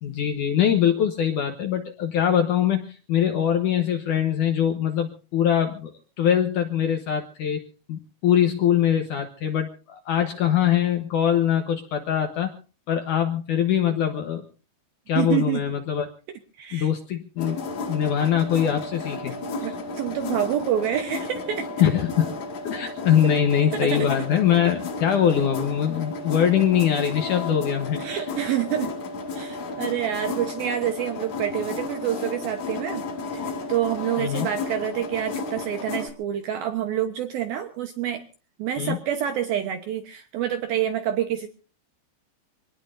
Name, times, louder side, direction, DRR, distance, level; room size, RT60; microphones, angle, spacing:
voice 1, 0.0-5.9 6.2-7.6 7.9-12.6 12.9-14.4 15.1-16.1 16.7-17.6 17.9-19.4 21.8-22.3 22.6-28.0 34.2-34.5 38.8-39.0, left 9 dB, 75° left, 5 dB, 1.9 m, -22 dB
voice 2, 15.2-15.6 16.6-16.9 19.6-21.7 23.8-24.2 28.0-28.9 29.3-33.0 33.3-38.2 38.6-41.5, right 10 dB, 70° right, 7 dB, 2.5 m, -27 dB
sound 1, 17.4-36.1, left 3 dB, 50° left, 2.9 m, -33 dB
25.5 x 19.0 x 2.6 m, 0.37 s
omnidirectional pair, 5.2 m